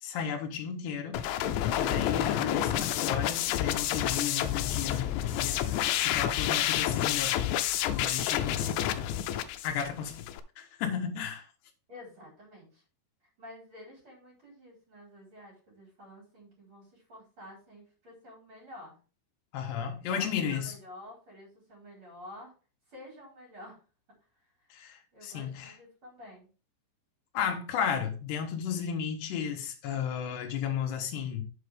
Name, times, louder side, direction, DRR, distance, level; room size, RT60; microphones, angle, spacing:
voice 1, 0.0-1.2 1.8-7.4 7.8-8.6 9.6-10.3 10.6-11.5 19.5-20.7 24.7-25.7 27.3-31.4, left 7 dB, 70° left, 3.2 m, -34 dB
sound 1, 1.1-10.4, left 11 dB, 85° left, 3.0 m, -29 dB
voice 2, 11.9-12.8 13.4-19.0 20.0-22.5 22.9-23.8 24.4-24.7 25.1-26.5, left 1 dB, 30° right, 5.1 m, -50 dB
7.8 x 7.5 x 3.6 m
omnidirectional pair, 5.4 m